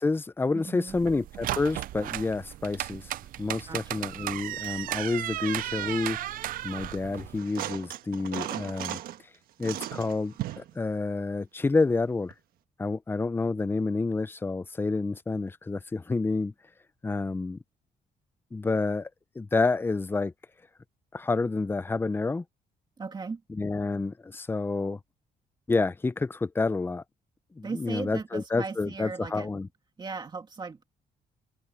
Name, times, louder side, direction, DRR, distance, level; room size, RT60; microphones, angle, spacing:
voice 1, 0.0-3.1 3.4-6.2 6.6-9.0 9.6-12.3 12.8-16.5 17.0-17.6 18.5-19.1 19.4-20.3 21.1-22.4 23.5-25.0 25.7-27.0 27.6-29.7, left 3 dB, 15° left, 0.6 m, -29 dB
voice 2, 0.5-1.0 3.7-4.1 23.0-23.4 27.6-29.5 30.0-30.8, right 4 dB, 30° right, 2.2 m, -37 dB
sound 1, 0.9-7.4, right 14 dB, 75° right, 0.4 m, -35 dB
sound 2, 7.4-9.2 9.6-10.7 12.3-12.4, right 13 dB, 90° right, 1.4 m, -36 dB
cardioid pair, 120°, 15 cm